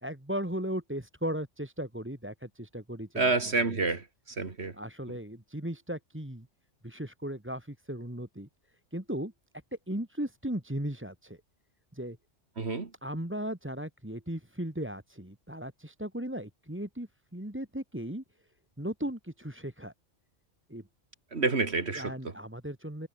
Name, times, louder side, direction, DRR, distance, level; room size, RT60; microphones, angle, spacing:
voice 1, 0.0-3.3 3.6-3.8 4.7-6.5 6.8-8.5 8.9-9.3 9.7-11.4 11.9-12.2 13.0-18.2 18.8-19.9 20.7-20.9 21.9-23.1, right 1 dB, 10° right, 2.5 m, -37 dB
voice 2, 3.2-4.7 12.6-12.9 21.3-22.1, right 3 dB, 60° right, 2.2 m, -28 dB
omnidirectional pair, 1.3 m